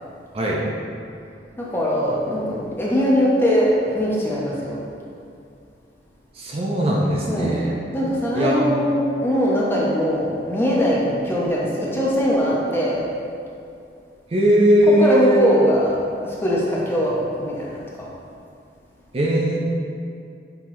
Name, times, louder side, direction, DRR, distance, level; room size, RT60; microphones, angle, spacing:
voice 1, 1.6-4.8 7.3-7.7 7.9-13.1 14.8-16.0 16.2-18.1, equal, 15° left, -5 dB, 0.6 m, -21 dB
voice 2, 6.4-7.7 8.3-8.6 14.3-15.4 19.1-19.6, equal, 35° right, -3 dB, 0.5 m, -19 dB
5.5 x 2.8 x 3.0 m, 2.4 s
head